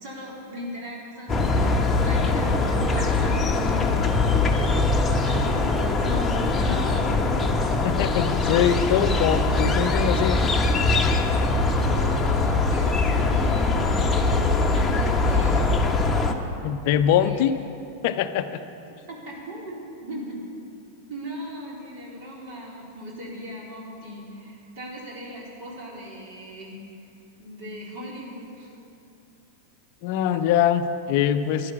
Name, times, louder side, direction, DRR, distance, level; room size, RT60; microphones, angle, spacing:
voice 1, 0.0-7.1 11.9-15.9 17.2-17.5 19.1-20.4 21.0-27.1 27.4-28.7, equal, 50° right, -3 dB, 4.1 m, -39 dB
sound 1, 1.3-16.3, left 3 dB, 15° left, 1.2 m, -22 dB
voice 2, 7.8-10.4 16.6-17.5 18.0-18.6 30.0-31.7, left 9 dB, 45° left, 10 dB, 0.6 m, -23 dB
13.0 x 11.5 x 8.5 m, 2.7 s
figure-of-eight pair, 90°, 0 cm